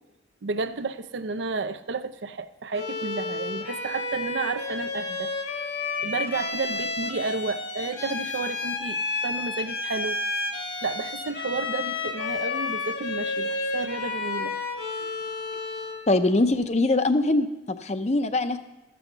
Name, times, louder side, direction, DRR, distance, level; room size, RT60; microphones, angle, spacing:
voice 1, 0.4-5.3 6.0-10.2 10.8-14.6 15.0-15.1, right 4 dB, 70° right, 12 dB, 0.5 m, -32 dB
Bowed string instrument, 2.7-16.1, left 3 dB, 60° left, 1.5 m, -31 dB
voice 2, 16.1-18.6, left 2 dB, 35° left, 10 dB, 0.6 m, -23 dB
13.5 x 6.3 x 6.7 m, 1.0 s
head